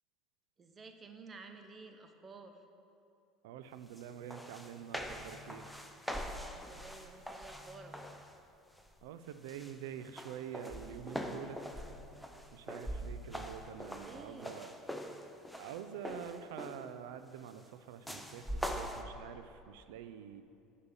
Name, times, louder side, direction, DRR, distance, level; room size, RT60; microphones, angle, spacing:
voice 1, 0.6-2.6 6.1-8.0 13.9-14.5, right 3 dB, 30° right, 6 dB, 0.9 m, -53 dB
voice 2, 3.4-5.7 9.0-11.6 12.5-14.7 15.6-20.4, right 9 dB, 80° right, 11 dB, 0.4 m, -47 dB
sound 1, 4.0-4.1 4.3-8.3 8.8-9.1 9.5-16.9 18.1-19.0, equal, ahead, 0.6 m, -43 dB
8.2 x 5.2 x 7.2 m, 2.7 s
supercardioid pair, 90°, 0 cm